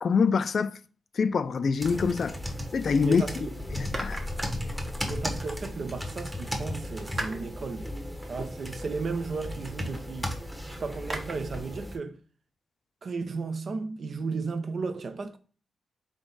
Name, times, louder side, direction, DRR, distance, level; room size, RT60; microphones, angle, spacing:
voice 1, 0.0-0.8 1.1-2.4 2.7-3.2 3.7-4.2, left 5 dB, 60° left, 0.3 m, -25 dB
sound 1, 1.8-12.0, equal, 15° right, 1.1 m, -36 dB
voice 2, 3.0-3.5 5.1-7.9 8.3-10.3 10.8-12.2 13.0-15.4, right 4 dB, 55° right, 0.6 m, -34 dB
sound 2, 3.6-6.3, left 2 dB, 20° left, 0.8 m, -40 dB
sound 3, 3.9-5.8 6.4-11.3, right 2 dB, 35° right, 1.1 m, -42 dB
3.8 x 3.4 x 3.9 m
cardioid pair, 70°, 0 cm